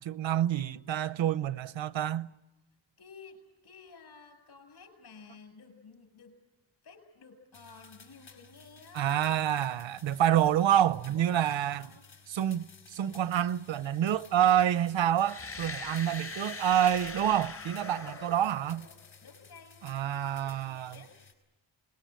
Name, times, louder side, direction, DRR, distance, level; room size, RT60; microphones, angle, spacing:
voice 1, 0.0-2.3 8.9-11.8 12.3-18.8 19.8-20.9, right 10 dB, 90° right, 0.8 m, -27 dB
voice 2, 3.0-6.4 6.8-9.2 11.1-12.1 17.8-21.1, left 4 dB, 60° left, 7.3 m, -53 dB
sound 1, 7.5-21.3, left 5 dB, 85° left, 5.7 m, -56 dB
sound 2, 15.2-19.1, left 3 dB, 30° left, 0.9 m, -41 dB
27.0 x 21.0 x 8.9 m
wide cardioid pair, 105°, 45 cm